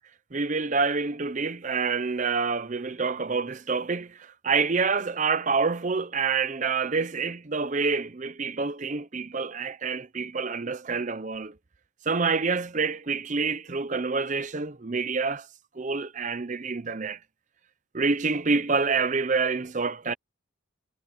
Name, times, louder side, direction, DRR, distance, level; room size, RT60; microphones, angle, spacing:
voice 1, 0.3-11.5 12.1-15.5 15.8-17.2 17.9-20.1, right 4 dB, 35° right, 0.6 m, -27 dB
head